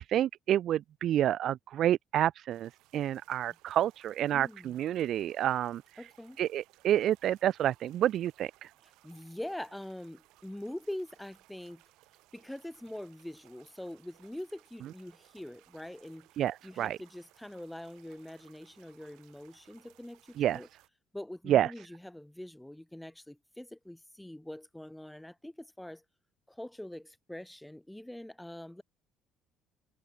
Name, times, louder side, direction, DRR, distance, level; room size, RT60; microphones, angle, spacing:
voice 1, 0.0-5.8 6.4-8.5 16.4-17.0 20.4-20.6 21.5-21.7, right 11 dB, 55° right, 0.3 m, -29 dB
sound 1, 2.5-20.9, right 19 dB, 85° right, 5.4 m, -63 dB
voice 2, 4.3-4.7 6.0-6.4 9.0-11.8 12.3-16.3 16.6-20.7 21.1-26.0 26.5-28.8, left 1 dB, 5° left, 2.6 m, -44 dB
cardioid pair, 145°, 0 cm